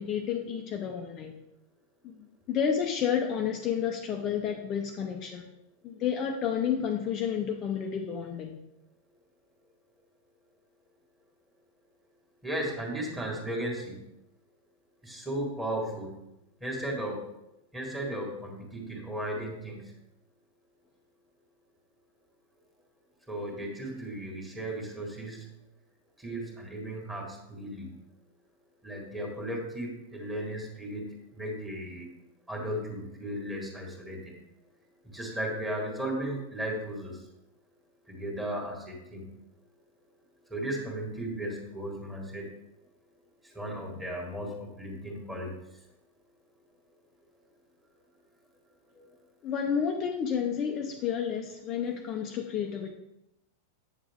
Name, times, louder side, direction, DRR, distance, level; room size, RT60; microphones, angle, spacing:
voice 1, 0.0-1.3 2.0-5.5 5.8-8.6 49.4-52.9, left 8 dB, 25° left, 1 dB, 0.7 m, -30 dB
voice 2, 12.4-14.0 15.0-16.2 16.6-17.3 17.7-19.9 23.3-25.5 26.2-28.0 28.8-32.2 32.5-34.4 35.0-37.3 38.1-39.3 40.5-42.5 43.4-45.5 48.9-49.1, right 1 dB, 10° right, -1 dB, 1.8 m, -35 dB
8.8 x 7.1 x 3.6 m, 0.87 s
supercardioid pair, 165°, 0 cm